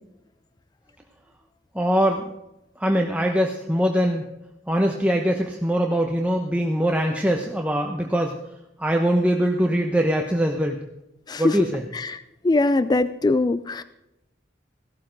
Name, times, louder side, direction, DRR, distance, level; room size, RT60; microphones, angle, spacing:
voice 1, 1.7-2.3 2.8-4.3 4.7-8.4 8.8-10.8 11.4-11.8, equal, 10° right, 2 dB, 0.8 m, -22 dB
voice 2, 11.9-13.8, left 2 dB, 20° left, 14 dB, 0.3 m, -22 dB
16.0 x 12.5 x 3.9 m, 0.88 s
head